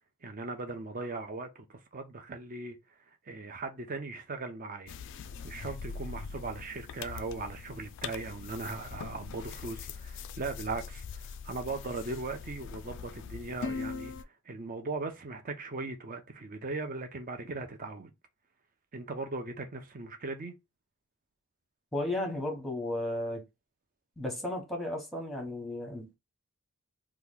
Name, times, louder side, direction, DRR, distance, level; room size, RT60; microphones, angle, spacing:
voice 1, 0.2-2.8 3.3-4.9 5.4-14.1 14.5-18.1 18.9-20.5, right 3 dB, 40° right, 0.6 m, -38 dB
sound 1, 4.9-14.2, left 5 dB, 55° left, 0.3 m, -42 dB
voice 2, 21.9-23.4 24.2-26.2, left 1 dB, ahead, 0.9 m, -34 dB
3.0 x 2.3 x 3.6 m
head